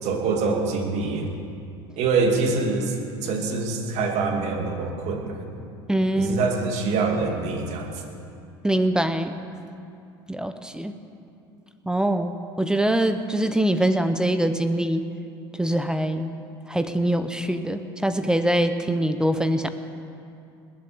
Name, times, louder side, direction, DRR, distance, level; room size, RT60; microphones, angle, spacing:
voice 1, 0.0-1.3 2.0-2.9 3.2-5.4 6.2-7.9, right 4 dB, 55° right, 3 dB, 2.4 m, -25 dB
voice 2, 5.9-6.5 8.6-9.4 10.3-10.9 11.9-15.0 15.6-16.3 16.7-19.7, right 1 dB, 5° right, 9 dB, 0.8 m, -23 dB
20.5 x 7.6 x 7.9 m, 2.5 s
hypercardioid pair, 85°, 13 cm